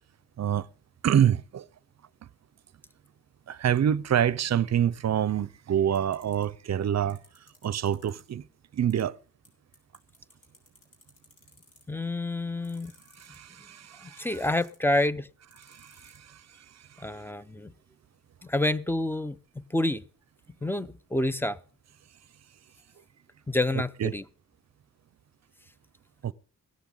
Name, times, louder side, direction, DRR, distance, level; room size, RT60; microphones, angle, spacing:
voice 1, 1.0-1.6 3.5-7.2 7.6-8.4 8.7-9.2 13.2-14.3 15.7-16.4 24.0-24.1 26.2-26.3, right 9 dB, 55° right, 0.6 m, -26 dB
sound 1, 5.9-6.4 7.1-8.2 8.9-9.0 9.4-9.5 9.7-12.0 12.6-13.5 14.2-14.9 15.5-16.2, left 2 dB, 45° left, 6.2 m, -56 dB
voice 2, 11.9-12.9 14.0-15.3 17.0-17.7 18.4-20.0 20.6-21.6 23.5-24.2, left 1 dB, 5° left, 0.5 m, -28 dB
17.0 x 13.5 x 3.9 m
wide cardioid pair, 125°, 33 cm